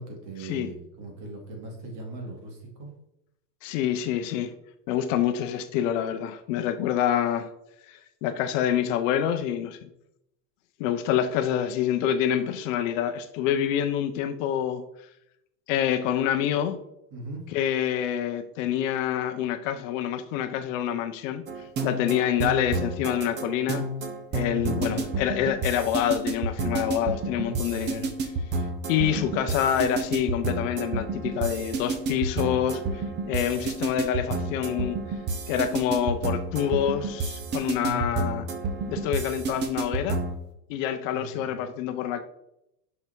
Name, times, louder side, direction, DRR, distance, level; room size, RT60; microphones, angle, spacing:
voice 1, 0.0-2.9 17.1-17.5 24.4-25.0 27.4-28.0 37.8-38.4 41.1-41.5, right 2 dB, 40° right, 2 dB, 2.2 m, -39 dB
voice 2, 3.6-4.5 4.9-7.5 7.9-9.9 10.8-14.8 15.7-16.8 17.5-21.4 21.8-23.8 24.3-28.1 28.9-35.0 35.5-38.4 38.9-40.2 40.7-42.2, left 10 dB, 50° left, 8 dB, 0.7 m, -27 dB
sound 1, 21.5-40.4, right 3 dB, 20° right, 0.6 m, -30 dB
5.9 x 5.6 x 4.6 m, 0.82 s
supercardioid pair, 150°, 50 cm